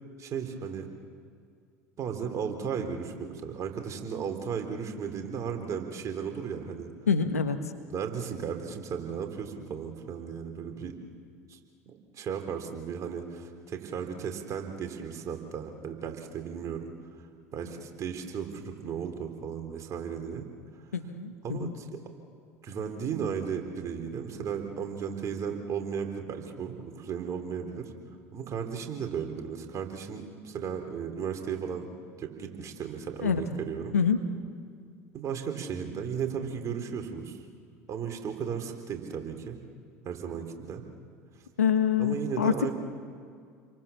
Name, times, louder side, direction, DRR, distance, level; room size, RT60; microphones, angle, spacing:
voice 1, 0.2-0.9 2.0-6.9 7.9-11.0 11.5-11.6 11.9-16.9 17.5-20.5 21.4-22.0 22.6-27.9 28.3-31.9 32.2-33.9 35.1-37.4 37.9-39.6 40.1-40.9 42.0-42.7, right 7 dB, 40° right, 5 dB, 3.7 m, -35 dB
voice 2, 7.1-7.6 20.9-21.7 33.2-33.4 33.9-34.2 41.6-42.5, left 7 dB, 90° left, 8 dB, 1.5 m, -25 dB
29.5 x 23.5 x 7.2 m, 2.2 s
hypercardioid pair, 75°, 8 cm